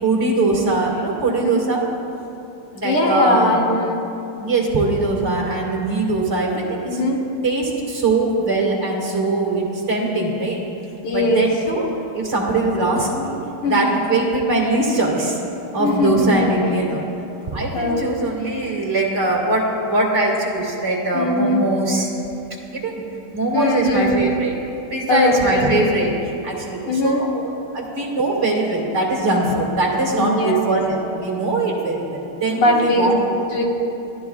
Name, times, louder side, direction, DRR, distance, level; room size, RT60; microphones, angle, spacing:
voice 1, 0.0-1.8 2.7-3.6 4.4-6.9 7.4-10.6 11.1-11.9 12.1-13.3 13.7-15.4 15.7-17.1 17.4-22.1 22.7-23.0 23.3-24.5 24.9-26.1 26.4-27.3 27.7-33.2, right 2 dB, 35° right, -2 dB, 2.3 m, -21 dB
voice 2, 1.3-1.6 2.8-4.0 6.9-7.2 11.0-11.5 13.6-13.8 15.8-16.7 17.7-18.0 21.1-21.6 23.5-24.2 25.1-25.7 26.9-27.3 30.1-30.6 32.5-33.1 33.5-33.6, left 2 dB, 75° left, 0 dB, 2.4 m, -20 dB
25.5 x 13.0 x 2.4 m, 2.8 s
omnidirectional pair, 2.4 m